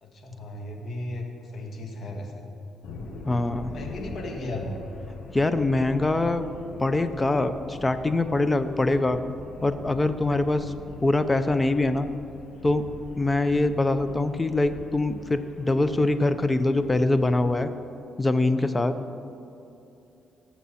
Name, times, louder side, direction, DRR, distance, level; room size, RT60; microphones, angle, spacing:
voice 1, 0.0-1.3 1.5-2.5 3.7-4.8, left 1 dB, 50° left, 2 dB, 2.0 m, -35 dB
sound 1, 2.8-17.6, left 2 dB, 70° left, 1.5 m, -43 dB
voice 2, 3.3-3.7 5.3-6.5 6.8-9.2 9.6-10.7 11.0-12.1 12.6-12.8 13.2-17.7 18.2-19.0, left 2 dB, 20° left, 11 dB, 0.7 m, -23 dB
18.5 x 7.4 x 4.3 m, 2.7 s
cardioid pair, 90°, 0 cm